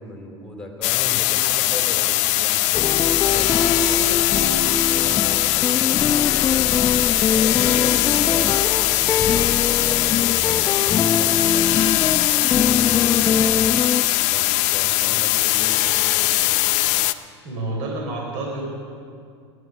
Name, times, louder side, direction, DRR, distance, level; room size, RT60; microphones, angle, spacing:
voice 1, 0.0-16.3, left 2 dB, 5° left, 2 dB, 3.4 m, -38 dB
sound 1, 0.8-17.1, left 17 dB, 55° left, 0.7 m, -20 dB
sound 2, 2.7-14.0, left 6 dB, 20° left, 0.5 m, -23 dB
voice 2, 17.4-18.6, right 2 dB, 60° right, -1 dB, 3.9 m, -28 dB
19.0 x 11.0 x 6.1 m, 2.2 s
hypercardioid pair, 105°, 15 cm